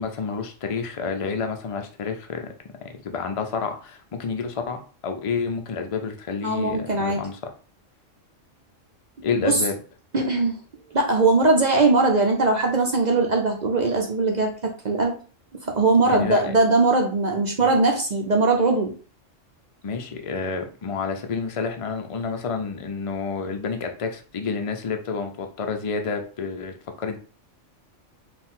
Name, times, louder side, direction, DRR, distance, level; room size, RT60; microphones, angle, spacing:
voice 1, 0.0-2.5 2.8-7.4 9.2-9.7 16.0-16.5 17.6-17.7 19.8-27.2, left 5 dB, 45° left, 5 dB, 0.4 m, -29 dB
voice 2, 6.4-7.2 9.4-9.6 10.1-10.6 10.9-15.1 15.7-18.9, right 3 dB, 45° right, 2 dB, 0.6 m, -20 dB
4.4 x 2.5 x 3.7 m, 0.39 s
omnidirectional pair, 1.3 m